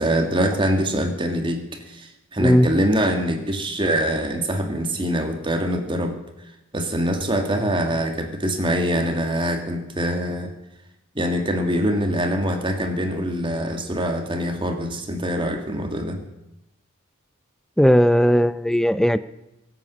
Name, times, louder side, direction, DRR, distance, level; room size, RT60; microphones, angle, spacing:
voice 1, 0.0-6.2 6.7-10.5 11.2-16.2, equal, 25° right, 5 dB, 2.0 m, -24 dB
voice 2, 17.8-19.2, equal, ahead, 14 dB, 0.5 m, -17 dB
23.5 x 8.6 x 6.3 m, 0.90 s
head